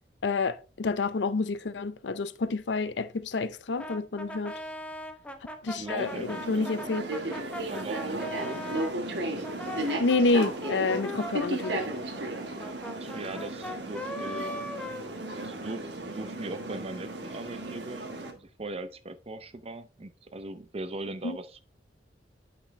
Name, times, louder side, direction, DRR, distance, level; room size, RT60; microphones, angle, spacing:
voice 1, 0.2-4.5 5.6-7.0 10.0-11.8 21.2-21.4, left 3 dB, 85° left, 0.6 m, -28 dB
Brass instrument, 3.8-8.9 9.4-15.7, left 1 dB, 5° left, 0.8 m, -40 dB
voice 2, 5.8-6.9 7.7-8.6 12.9-14.6 15.4-21.6, right 2 dB, 35° right, 0.6 m, -40 dB
sound 1, 6.0-18.3, right 1 dB, 75° right, 1.4 m, -35 dB
8.5 x 5.8 x 3.2 m
head